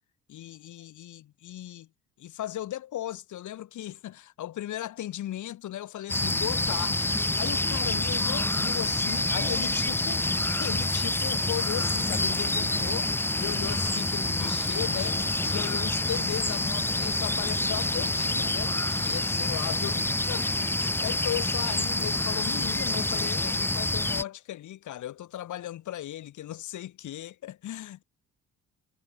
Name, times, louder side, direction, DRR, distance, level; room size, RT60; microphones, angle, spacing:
voice 1, 0.3-1.9 2.2-20.5 20.8-28.0, left 13 dB, 75° left, 3.8 m, -37 dB
sound 1, 6.1-6.2 8.1-8.3 10.1-10.2 10.5-10.6 11.1-11.2 11.5-20.1, left 6 dB, 40° left, 1.8 m, -45 dB
sound 2, 6.1-24.2, left 2 dB, 5° left, 0.6 m, -27 dB
sound 3, 6.4-13.2, right 14 dB, 80° right, 3.6 m, -52 dB
cardioid pair, 90°, 30 cm